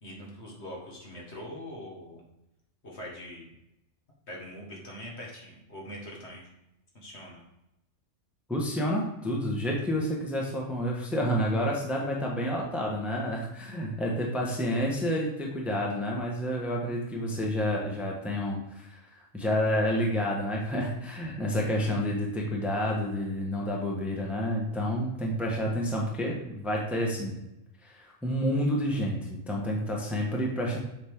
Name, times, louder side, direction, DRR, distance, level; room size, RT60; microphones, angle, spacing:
voice 1, 0.0-2.2 2.8-3.5 4.3-6.5 6.9-7.4, equal, 60° left, -2 dB, 1.9 m, -43 dB
voice 2, 8.5-27.4 27.8-30.8, equal, ahead, -1 dB, 1.1 m, -29 dB
7.2 x 5.1 x 3.6 m, 0.89 s
omnidirectional pair, 1.3 m